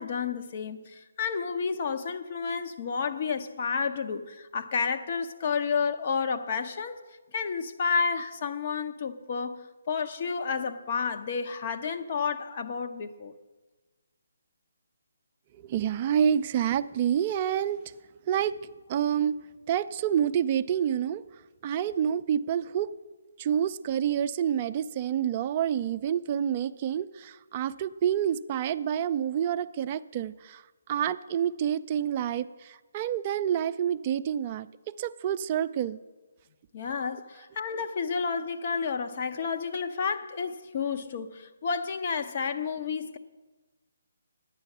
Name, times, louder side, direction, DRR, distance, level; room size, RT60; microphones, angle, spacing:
voice 1, 0.0-7.0 7.3-13.3 36.7-43.2, left 5 dB, 45° left, 0.8 m, -31 dB
voice 2, 15.5-17.8 18.3-18.5 18.9-19.4 19.7-21.2 21.6-22.9 23.4-30.6 30.9-34.7 35.0-36.0, right 9 dB, 30° right, 0.4 m, -28 dB
10.5 x 9.1 x 6.0 m
figure-of-eight pair, 150°, 0 cm